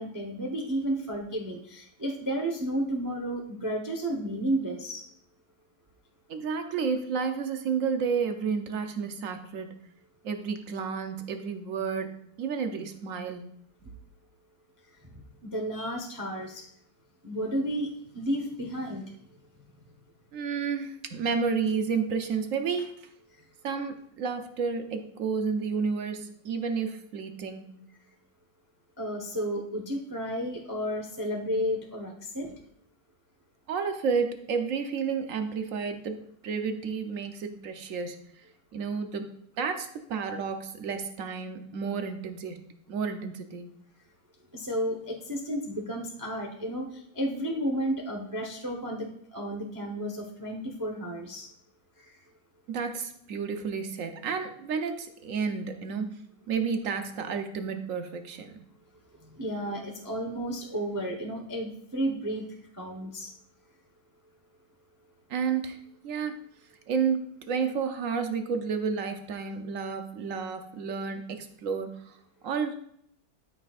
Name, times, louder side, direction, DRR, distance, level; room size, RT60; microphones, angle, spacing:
voice 1, 0.0-5.0 15.0-16.7 17.2-19.1 23.4-23.5 29.0-32.5 44.5-51.5 52.0-52.2 59.2-62.5 62.7-63.3, equal, 30° right, 1 dB, 0.3 m, -32 dB
voice 2, 6.3-9.7 10.2-13.4 20.3-23.1 23.6-27.9 33.7-38.2 38.7-39.3 39.6-42.6 42.9-43.7 52.7-56.1 56.5-58.6 65.3-66.4 66.9-72.2 72.4-72.8, right 5 dB, 65° right, 6 dB, 0.8 m, -31 dB
13.0 x 5.9 x 2.5 m, 0.70 s
omnidirectional pair, 2.2 m